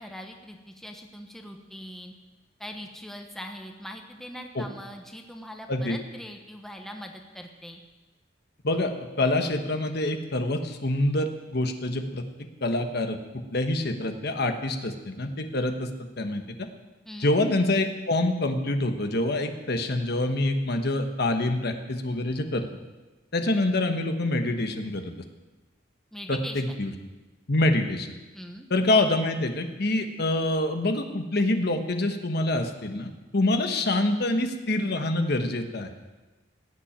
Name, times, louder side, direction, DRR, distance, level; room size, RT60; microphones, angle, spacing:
voice 1, 0.0-2.1 2.6-7.8 17.1-17.3 26.1-26.8 28.3-28.7, equal, ahead, 3 dB, 1.1 m, -41 dB
voice 2, 9.2-13.2 13.5-15.9 16.2-16.7 17.2-22.7 23.3-25.1 26.3-26.9 27.5-28.1 28.7-35.9, left 2 dB, 60° left, 6 dB, 1.3 m, -26 dB
17.0 x 7.3 x 8.9 m, 1.2 s
head